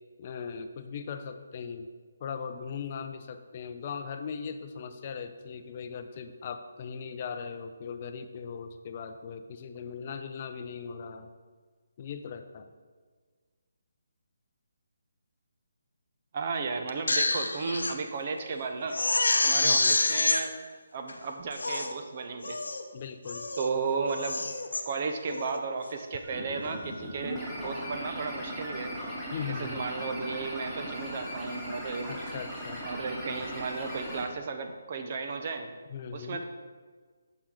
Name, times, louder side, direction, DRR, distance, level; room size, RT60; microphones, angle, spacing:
voice 1, 0.2-1.9 2.2-11.3 12.0-12.7 19.6-20.0 22.9-23.5 29.3-29.8 32.1-32.9 35.9-36.4, left 6 dB, 35° left, 8 dB, 0.5 m, -39 dB
voice 2, 16.3-19.0 19.4-20.5 20.9-22.6 23.6-24.5 24.9-28.9 29.5-32.1 32.8-35.7 36.1-36.4, right 4 dB, 40° right, 6 dB, 0.8 m, -34 dB
Crying sobbing, 16.9-17.9 18.4-18.5 18.9-20.4 21.1-21.2 21.5-21.9 22.4-22.8 23.2-23.7 24.1-24.8 25.3-25.6, left 3 dB, 80° left, 0.8 m, -27 dB
sound 1, 26.2-34.2, equal, 10° right, 2.2 m, -38 dB
8.7 x 6.3 x 3.8 m, 1.5 s
figure-of-eight pair, 155°, 0 cm